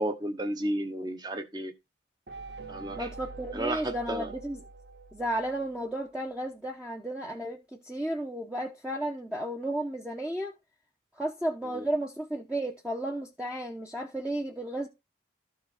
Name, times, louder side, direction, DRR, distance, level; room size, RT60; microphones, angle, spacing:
voice 1, 0.0-1.7 2.7-3.1 3.5-4.3 11.7-11.8, right 1 dB, 20° right, 1.1 m, -32 dB
sound 1, 2.3-6.0, right 3 dB, 60° right, 0.9 m, -45 dB
voice 2, 3.0-4.6 5.1-10.5 11.1-14.9, right 1 dB, 5° right, 0.9 m, -33 dB
13.0 x 4.8 x 4.9 m
head